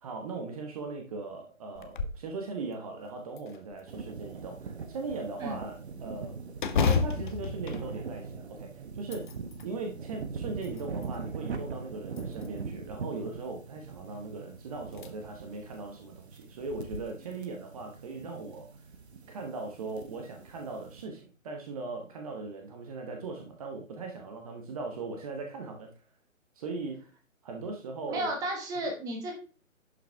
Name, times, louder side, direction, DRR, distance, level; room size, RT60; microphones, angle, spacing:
voice 1, 0.0-6.4 6.8-9.3 9.6-18.7 19.3-25.9 26.6-27.0 27.4-28.3, right 3 dB, 25° right, 3 dB, 1.2 m, -39 dB
sound 1, 1.7-2.3 2.7-2.8 3.4-4.2 6.6-8.6 9.0-9.7 10.3-11.2 12.1-12.8 14.2-14.3 14.9-15.1 15.5-15.6 16.7-17.0, left 5 dB, 35° left, 1.0 m, -32 dB
sound 2, 3.9-21.0, right 5 dB, 50° right, 1.3 m, -42 dB
voice 2, 28.1-29.3, right 1 dB, 10° right, 2 dB, 1.3 m, -33 dB
11.5 x 5.7 x 3.5 m, 0.37 s
figure-of-eight pair, 140°, 41 cm